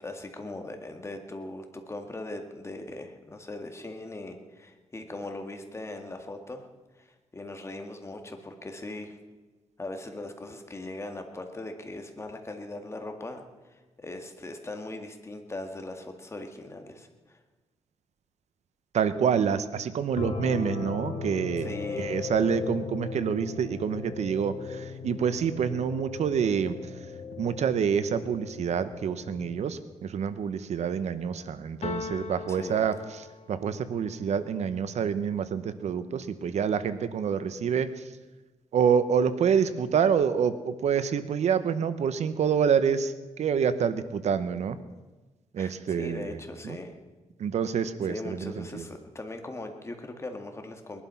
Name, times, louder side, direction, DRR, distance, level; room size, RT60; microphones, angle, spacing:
voice 1, 0.0-6.7 7.0-9.2 9.8-17.4 21.6-22.1 32.5-32.9 45.6-47.0 48.1-51.0, left 2 dB, 25° left, 5 dB, 2.0 m, -40 dB
voice 2, 18.9-21.7 22.0-26.7 27.4-32.9 33.5-38.0 38.7-44.8 45.5-46.4 46.6-46.8 47.4-48.9, right 7 dB, 80° right, 12 dB, 0.9 m, -27 dB
sound 1, 20.2-29.7, left 5 dB, 90° left, 2.1 m, -37 dB
sound 2, 31.8-33.8, left 6 dB, 70° left, 1.2 m, -39 dB
21.0 x 11.5 x 5.7 m, 1.2 s
cardioid pair, 110°, 11 cm